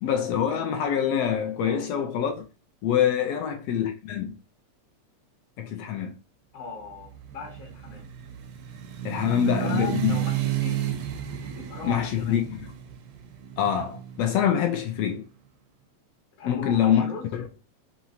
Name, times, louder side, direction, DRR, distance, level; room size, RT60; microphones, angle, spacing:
voice 1, 0.0-2.4 2.8-4.3 5.6-6.1 9.0-10.2 11.8-12.7 13.6-15.3 16.5-17.5, left 9 dB, 80° left, 1.4 m, -25 dB
voice 2, 6.5-8.1 9.2-10.9 11.5-12.4 16.4-17.3, left 4 dB, 65° left, 1.8 m, -39 dB
sound 1, 7.0-15.0, right 10 dB, 85° right, 1.4 m, -32 dB
4.9 x 2.9 x 2.8 m
omnidirectional pair, 3.3 m